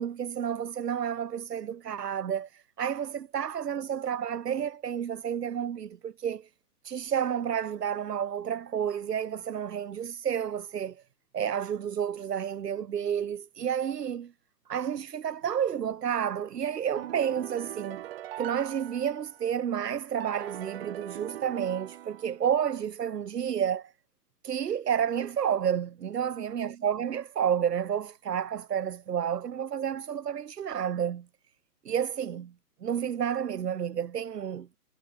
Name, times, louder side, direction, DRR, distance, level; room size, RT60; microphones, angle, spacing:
voice 1, 0.0-6.5 6.8-11.0 11.3-14.3 14.7-18.0 18.4-23.9 24.4-31.3 31.8-32.5 32.8-34.8, right 8 dB, 90° right, 1.0 m, -30 dB
sound 1, 17.0-19.6 20.2-22.7, right 13 dB, 40° right, 0.9 m, -41 dB
hypercardioid pair, 140°, 46 cm